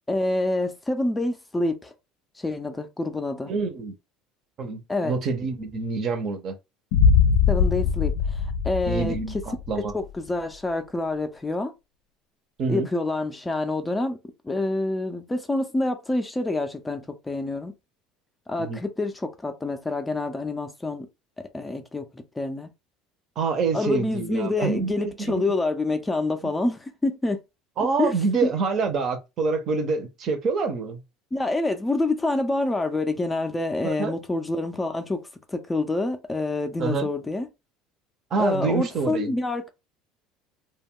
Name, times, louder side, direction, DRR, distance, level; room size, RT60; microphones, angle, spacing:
voice 1, 0.1-1.9 2.4-3.5 4.9-5.1 7.5-9.2 9.9-11.7 12.7-14.2 14.4-17.7 18.5-21.1 21.4-22.7 23.7-27.4 28.0-28.1 28.4-28.5 31.3-37.5 38.4-39.7, left 2 dB, 10° left, 0.4 m, -27 dB
voice 2, 3.5-3.9 4.6-6.6 8.9-9.9 12.6-12.9 18.6-18.8 23.4-25.4 27.8-31.0 33.8-34.1 36.8-37.1 38.3-39.3, right 4 dB, 45° right, 0.6 m, -26 dB
Boom, 6.9-9.9, left 6 dB, 80° left, 0.3 m, -21 dB
2.2 x 2.1 x 3.5 m
supercardioid pair, 120°, 0 cm